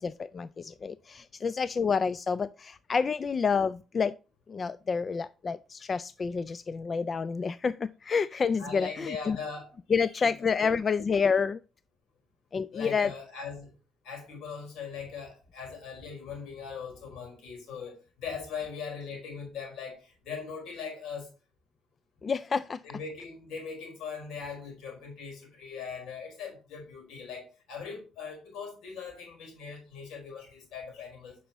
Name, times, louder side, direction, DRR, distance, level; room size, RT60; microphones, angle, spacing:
voice 1, 0.0-4.1 4.5-9.4 9.9-11.6 12.5-13.1 22.2-22.8, left 5 dB, 40° left, 0.3 m, -29 dB
voice 2, 8.6-9.7 10.2-10.3 10.6-10.8 12.7-13.7 14.0-21.3 22.8-31.4, left 5 dB, 85° left, 4.6 m, -40 dB
9.0 x 6.1 x 3.0 m
cardioid pair, 90°, 0 cm